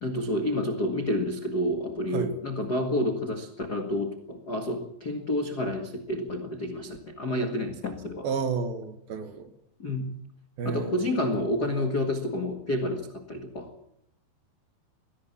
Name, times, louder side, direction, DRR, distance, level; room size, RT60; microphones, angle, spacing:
voice 1, 0.0-8.3 9.8-10.1 10.6-13.7, left 1 dB, 45° left, 5 dB, 1.2 m, -29 dB
voice 2, 8.2-9.5 10.6-11.0, right 5 dB, 65° right, 8 dB, 3.4 m, -31 dB
22.0 x 18.0 x 7.4 m, 0.73 s
omnidirectional pair, 4.8 m